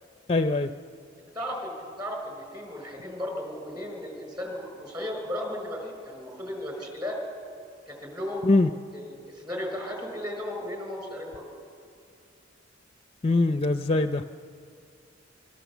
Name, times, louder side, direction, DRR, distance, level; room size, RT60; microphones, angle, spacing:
voice 1, 0.3-0.7 8.4-8.7 13.2-14.2, left 2 dB, 30° left, 9 dB, 0.5 m, -22 dB
voice 2, 1.3-7.2 7.9-8.5 8.9-11.4, left 1 dB, 20° right, 2 dB, 5.0 m, -35 dB
25.5 x 23.0 x 7.2 m, 2.4 s
head